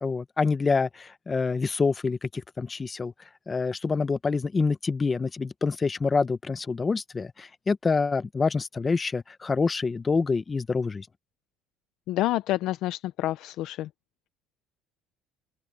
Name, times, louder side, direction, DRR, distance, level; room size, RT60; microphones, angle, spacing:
voice 1, 0.0-3.1 3.5-11.1, left 4 dB, 20° left, 0.7 m, -26 dB
voice 2, 12.1-13.9, left 15 dB, 60° left, 0.6 m, -28 dB
open air
cardioid pair, 130°, 0 cm